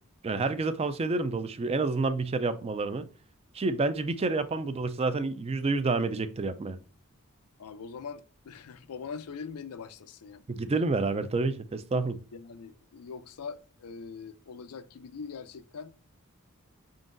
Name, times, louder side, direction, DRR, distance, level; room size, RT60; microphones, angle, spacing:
voice 1, 0.2-3.1 3.5-6.8 10.5-12.2, right 3 dB, 25° right, 0.3 m, -29 dB
voice 2, 7.6-10.4 12.3-15.9, left 5 dB, 85° left, 0.5 m, -42 dB
5.0 x 3.8 x 2.5 m
head